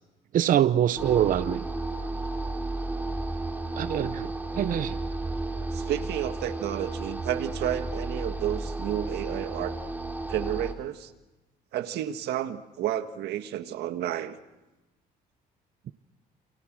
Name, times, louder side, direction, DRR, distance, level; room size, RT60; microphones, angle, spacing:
voice 1, 0.3-1.6 3.8-5.0, right 10 dB, 55° right, 14 dB, 0.8 m, -24 dB
sound 1, 1.0-10.7, right 2 dB, 10° right, 3.2 m, -33 dB
voice 2, 5.7-9.7 10.3-11.1 11.7-14.4, right 11 dB, 75° right, 9 dB, 1.8 m, -31 dB
30.0 x 28.0 x 6.2 m, 1.0 s
cardioid pair, 110°, 17 cm